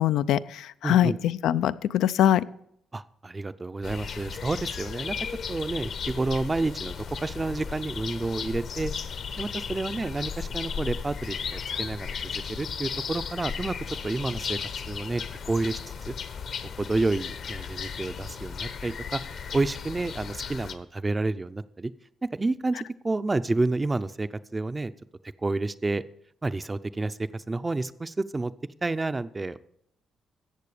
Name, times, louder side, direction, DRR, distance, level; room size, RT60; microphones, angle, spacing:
voice 1, 0.0-2.4, left 11 dB, 80° left, 15 dB, 0.4 m, -23 dB
voice 2, 0.8-1.2 2.9-5.2 5.5-8.9 9.4-14.6 14.9-15.8 16.1-16.2 16.8-19.2 19.5-21.9 22.3-24.9 25.4-26.0 26.4-28.5 28.8-29.6, right 2 dB, 20° right, 13 dB, 0.5 m, -29 dB
sound 1, 3.8-20.7, left 6 dB, 60° left, 1.0 m, -35 dB
14.0 x 7.9 x 5.0 m, 0.74 s
cardioid pair, 90°, 0 cm